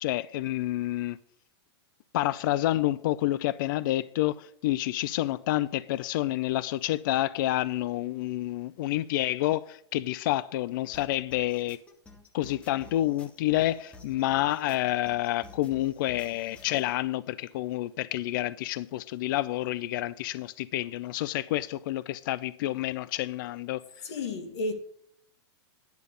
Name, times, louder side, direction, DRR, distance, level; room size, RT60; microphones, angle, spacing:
voice 1, 0.0-1.2 2.1-11.8 12.3-24.1, left 15 dB, 50° left, 0.4 m, -29 dB
sound 1, 10.9-16.9, left 2 dB, 10° left, 0.7 m, -51 dB
voice 2, 24.0-24.7, left 2 dB, 75° left, 2.3 m, -32 dB
10.5 x 6.9 x 5.1 m
supercardioid pair, 160°, 14 cm